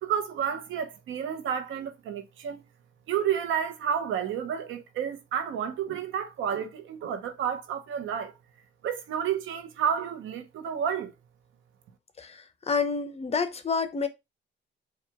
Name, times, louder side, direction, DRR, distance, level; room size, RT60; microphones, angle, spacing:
voice 1, 0.0-2.6 3.1-8.3 8.8-11.1, right 8 dB, 80° right, 0.8 m, -30 dB
voice 2, 12.2-14.1, left 5 dB, 30° left, 0.7 m, -29 dB
4.6 x 2.4 x 3.4 m
cardioid pair, 90°, 20 cm